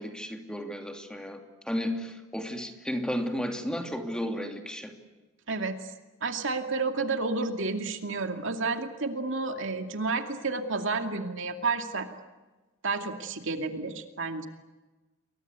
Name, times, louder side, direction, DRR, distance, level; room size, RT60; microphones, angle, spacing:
voice 1, 0.0-4.9, equal, 5° left, 4 dB, 2.9 m, -33 dB
voice 2, 5.5-5.8 6.2-12.1 12.8-14.5, right 3 dB, 65° right, 5 dB, 2.4 m, -30 dB
29.5 x 23.0 x 8.3 m, 1.2 s
head